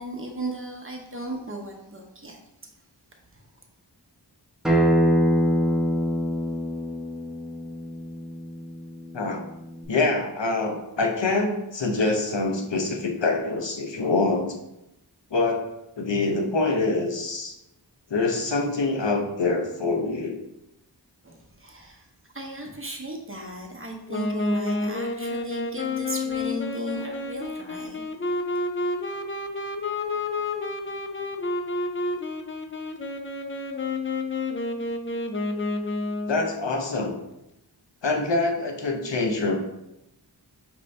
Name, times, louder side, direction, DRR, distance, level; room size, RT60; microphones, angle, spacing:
voice 1, 0.0-2.4 21.2-22.1 22.3-28.0, right 1 dB, 30° right, 0 dB, 0.8 m, -36 dB
Acoustic guitar, 4.6-9.8, equal, ahead, 0.8 m, -25 dB
voice 2, 9.9-14.6 15.3-15.7 16.0-17.5 18.1-20.4 36.3-37.1 38.0-39.6, left 3 dB, 75° left, 2 dB, 0.7 m, -25 dB
Wind instrument woodwind instrument, 24.1-36.5, left 2 dB, 30° left, 0.4 m, -30 dB
5.3 x 2.6 x 3.2 m, 0.88 s
wide cardioid pair, 40°, 43 cm